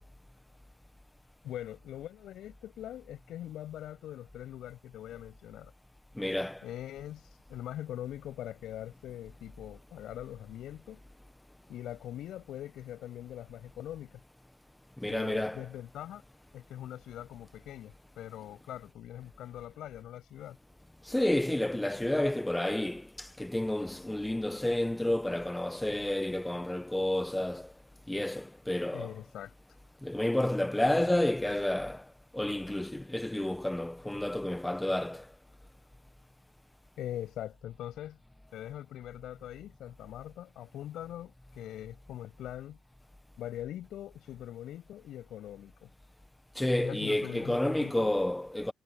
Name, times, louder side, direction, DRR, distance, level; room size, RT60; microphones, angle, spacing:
voice 1, 1.4-5.7 6.6-11.0 11.7-14.2 15.1-16.2 16.5-20.6 28.9-29.5 37.0-38.2 38.5-42.8 43.4-45.9 46.8-48.1, left 12 dB, 80° left, 7.4 m, -42 dB
voice 2, 6.2-6.6 15.0-15.7 21.1-27.7 28.1-29.1 30.0-32.0 32.3-35.2 46.6-48.7, left 1 dB, 10° left, 1.2 m, -30 dB
cardioid pair, 90°, 0 cm